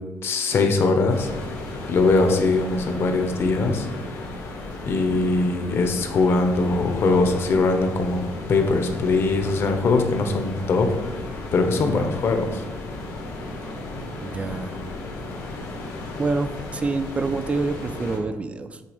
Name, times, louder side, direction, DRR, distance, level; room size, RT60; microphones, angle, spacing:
voice 1, 0.2-1.3 1.9-3.9 4.9-8.2 8.5-11.1 11.5-12.6, left 3 dB, 45° left, 5 dB, 0.9 m, -21 dB
sound 1, 1.1-18.2, left 2 dB, 75° left, 1.7 m, -35 dB
voice 2, 11.8-12.2 14.2-14.8 16.2-18.8, right 3 dB, 20° right, 10 dB, 0.3 m, -27 dB
8.3 x 3.4 x 5.1 m, 1.2 s
cardioid pair, 155°, 6 cm